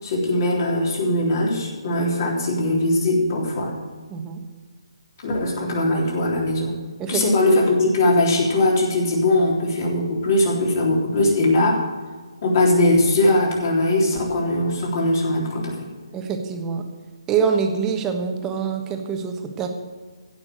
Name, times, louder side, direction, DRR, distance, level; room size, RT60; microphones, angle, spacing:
voice 1, 0.0-3.7 5.2-6.8 7.1-11.8 12.4-15.7, left 1 dB, 40° left, -1 dB, 3.7 m, -20 dB
voice 2, 4.1-4.4 7.0-7.2 16.1-16.8 17.3-19.7, right 6 dB, 15° right, 4 dB, 1.3 m, -25 dB
16.0 x 6.2 x 7.8 m, 1.4 s
figure-of-eight pair, 145°, 3 cm